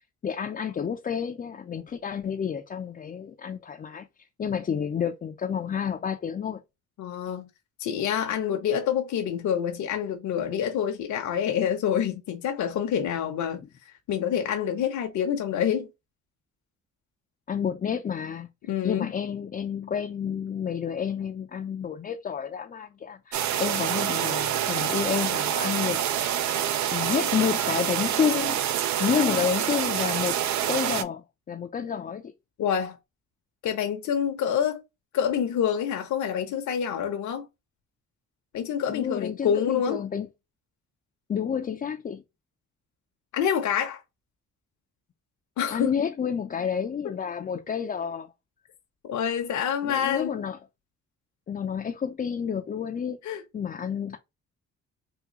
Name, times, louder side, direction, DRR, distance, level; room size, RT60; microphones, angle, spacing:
voice 1, 0.2-4.1 4.4-6.6 17.5-18.5 18.8-26.0 26.9-28.6 29.0-30.4 30.7-31.2 31.5-32.2 38.9-40.3 41.3-42.2 45.7-48.3 49.8-50.6 51.5-53.2 53.5-54.2, left 7 dB, 30° left, 0.4 m, -29 dB
voice 2, 7.0-7.5 7.8-13.6 14.1-15.9 18.7-19.1 32.6-33.0 33.6-34.8 35.1-37.5 38.5-40.0 43.3-44.0 45.6-45.9 49.0-50.4 53.2-53.4, left 8 dB, 70° left, 0.8 m, -27 dB
sound 1, 23.3-31.0, right 10 dB, 65° right, 0.5 m, -27 dB
3.6 x 2.3 x 2.8 m
cardioid pair, 90°, 30 cm